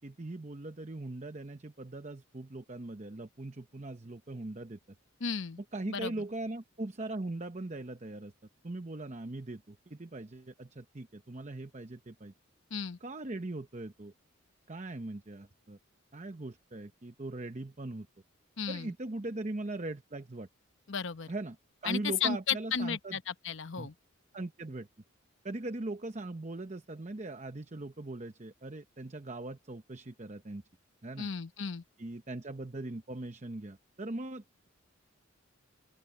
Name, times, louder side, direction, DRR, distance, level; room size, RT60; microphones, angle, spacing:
voice 1, 0.0-4.8 5.7-8.3 8.6-12.3 13.0-14.1 14.7-15.8 16.1-18.1 18.7-20.5 21.3-21.6 21.8-23.2 23.8-23.9 24.3-24.9 25.4-30.6 31.0-31.3 32.0-34.7, right 2 dB, 35° right, 0.8 m, -40 dB
voice 2, 5.2-5.6 5.9-6.1 12.7-13.0 18.6-18.9 20.9-21.3 21.8-23.9 31.2-31.8, left 6 dB, 60° left, 0.9 m, -34 dB
open air
head